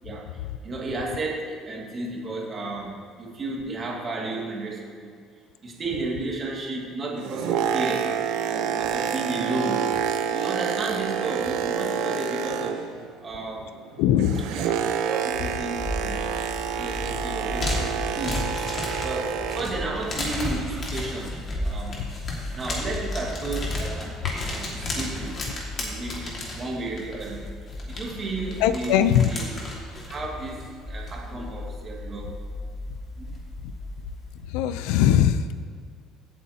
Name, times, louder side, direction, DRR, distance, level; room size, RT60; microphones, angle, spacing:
voice 1, 0.0-5.1 5.6-8.2 8.5-9.9 10.3-12.9 13.2-13.8 14.5-16.4 16.8-21.4 21.6-22.1 22.5-24.2 24.4-25.5 25.8-27.5 27.9-29.5 29.9-32.6 33.2-33.3, right 2 dB, 25° right, -2 dB, 1.8 m, -33 dB
Boat Water vehicle, 7.0-13.1 13.4-19.8 20.5-20.6, right 8 dB, 75° right, 0.7 m, -28 dB
voice 2, 14.0-14.4 28.6-29.3 34.5-35.4, left 10 dB, 85° left, 12 dB, 0.5 m, -20 dB
sound 1, 15.3-34.4, left 1 dB, 30° left, 2.0 m, -33 dB
16.5 x 8.0 x 2.9 m, 2.1 s
cardioid pair, 160°, 0 cm